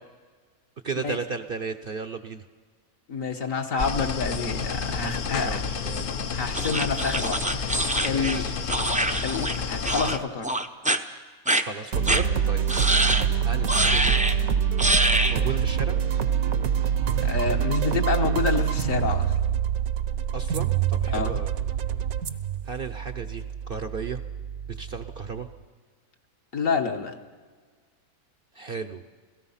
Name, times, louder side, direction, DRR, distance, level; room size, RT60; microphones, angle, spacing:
voice 1, 0.8-2.4 5.4-6.1 8.1-8.5 11.6-12.9 13.4-14.2 15.2-16.0 20.3-21.5 22.7-24.2 24.8-25.5 28.6-29.0, right 5 dB, 50° right, 9 dB, 0.8 m, -34 dB
voice 2, 3.1-5.6 6.3-8.4 9.2-10.5 17.2-19.3 21.1-21.4 26.5-27.1, left 5 dB, 65° left, 4 dB, 1.8 m, -28 dB
sound 1, 3.8-10.2, left 5 dB, 45° left, 0.8 m, -30 dB
sound 2, 6.5-9.6 9.8-10.2 10.4-11.0 11.5-11.6 12.1-12.2 12.7-13.3 13.7-14.4 14.8-15.4, right 1 dB, 10° right, 0.4 m, -24 dB
sound 3, 11.9-25.3, right 8 dB, 70° right, 1.3 m, -25 dB
27.5 x 17.5 x 5.7 m, 1.5 s
omnidirectional pair, 1.5 m